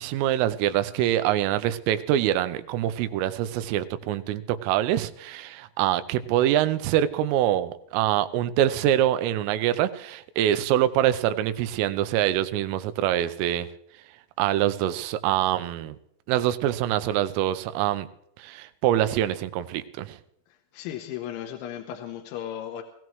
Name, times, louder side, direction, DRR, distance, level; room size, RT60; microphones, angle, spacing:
voice 1, 0.0-13.7 14.4-16.0 16.3-18.1 18.4-20.2, right 12 dB, 90° right, 3.3 m, -25 dB
voice 2, 20.5-22.8, left 10 dB, 80° left, 3.2 m, -36 dB
21.0 x 15.5 x 3.1 m
omnidirectional pair, 5.7 m